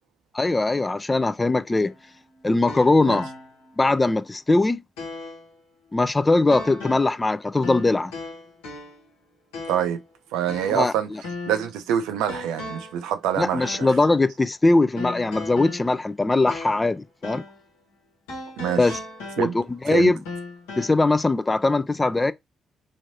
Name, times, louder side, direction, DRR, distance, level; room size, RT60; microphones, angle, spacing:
voice 1, 0.3-1.9 2.4-3.3 3.8-4.8 5.9-8.1 10.7-11.2 13.4-17.4 18.8-19.0 19.4-20.2 20.8-22.3, left 2 dB, 25° left, 0.3 m, -21 dB
sound 1, 1.7-3.8 4.2-4.3 5.0-5.5 6.5-7.3 7.6-9.1 9.5-10.0 10.5-11.8 12.3-13.0 13.6-14.0 15.0-17.0 17.2-17.6 18.3-19.8 20.3-20.9, left 3 dB, 90° left, 1.1 m, -37 dB
voice 2, 9.7-10.0 10.3-11.1 11.5-13.9 18.6-18.8 19.4-19.5 19.9-20.1, right 9 dB, 85° right, 0.4 m, -25 dB
3.1 x 2.5 x 2.7 m
hypercardioid pair, 50°, 0 cm